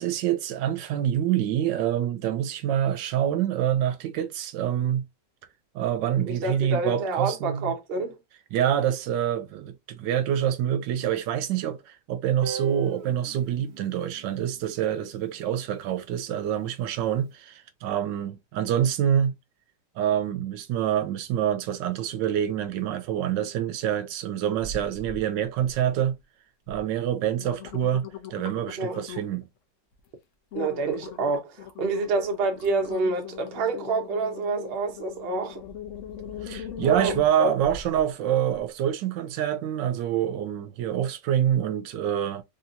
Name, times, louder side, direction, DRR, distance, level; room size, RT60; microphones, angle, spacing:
voice 1, 0.0-5.0 5.7-7.7 8.5-19.3 20.0-26.2 26.7-28.0 28.3-29.4 36.4-42.4, right 10 dB, 85° right, 1.3 m, -26 dB
voice 2, 6.2-8.2 28.8-29.0 30.5-35.6 36.8-37.5, right 3 dB, 50° right, 0.7 m, -28 dB
Guitar, 12.4-15.4, right 7 dB, 70° right, 1.2 m, -39 dB
sound 1, 24.6-25.2 25.6-26.1 26.7-26.8 27.2-29.4 29.9-30.1 30.5-38.0 38.5-38.6, left 7 dB, 60° left, 0.8 m, -40 dB
3.4 x 2.8 x 2.5 m
omnidirectional pair, 1.9 m